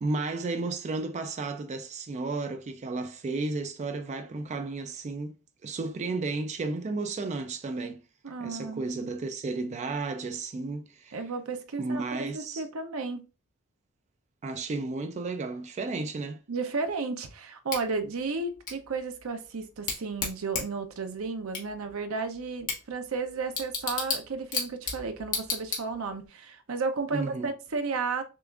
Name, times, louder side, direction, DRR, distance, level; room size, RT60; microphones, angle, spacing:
voice 1, 0.0-8.0 8.4-11.2 11.8-12.6 14.4-16.4 27.1-27.5, right 3 dB, 35° right, 0.3 m, -33 dB
voice 2, 8.2-8.8 11.1-13.2 16.5-28.2, right 4 dB, 75° right, 0.6 m, -33 dB
Bicycle / Tick, 17.7-26.3, left 4 dB, 40° left, 1.5 m, -36 dB
6.6 x 2.4 x 2.4 m
head